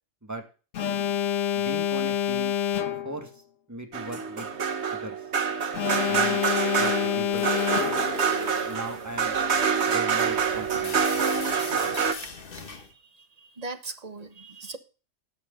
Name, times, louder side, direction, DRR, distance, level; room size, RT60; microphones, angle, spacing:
Alarm, 0.7-3.3 5.7-8.3, left 10 dB, 80° left, 1.3 m, -27 dB
voice 1, 1.6-2.5 3.0-3.3 3.7-4.5 4.9-5.2 6.1-6.4 6.8-7.6 8.7-9.4 9.9-11.0, right 1 dB, 15° right, 1.9 m, -38 dB
sound 1, 3.9-12.1, right 6 dB, 60° right, 1.4 m, -26 dB
sound 2, 7.3-12.9, left 5 dB, 45° left, 1.4 m, -40 dB
voice 2, 13.4-14.8, right 3 dB, 30° right, 1.2 m, -39 dB
17.0 x 6.5 x 3.8 m
omnidirectional pair, 1.3 m